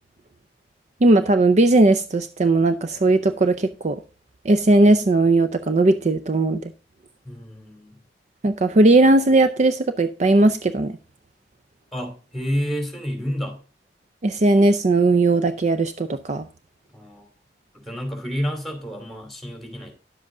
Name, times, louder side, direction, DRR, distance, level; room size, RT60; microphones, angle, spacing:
voice 1, 1.0-4.0 4.4-6.6 8.4-11.0 14.2-16.5, right 2 dB, 40° right, 0.5 m, -18 dB
voice 2, 7.2-8.0 11.9-13.6 16.9-17.2 17.7-19.9, equal, ahead, 2.7 m, -29 dB
10.5 x 7.6 x 3.8 m
head